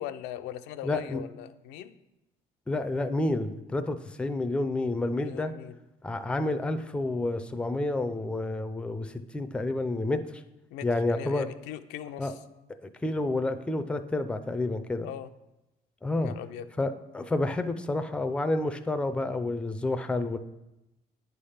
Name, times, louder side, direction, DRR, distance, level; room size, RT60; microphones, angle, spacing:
voice 1, 0.0-2.0 5.1-5.8 10.7-12.3 15.0-15.3 16.2-16.7, left 11 dB, 90° left, 9 dB, 0.4 m, -40 dB
voice 2, 0.8-1.2 2.7-5.5 6.0-10.4 10.8-11.5 12.2-12.3 12.8-15.1 16.0-16.3 16.8-20.4, left 2 dB, 5° left, 8 dB, 0.4 m, -29 dB
9.1 x 3.4 x 5.6 m, 0.96 s
cardioid pair, 110°, 17 cm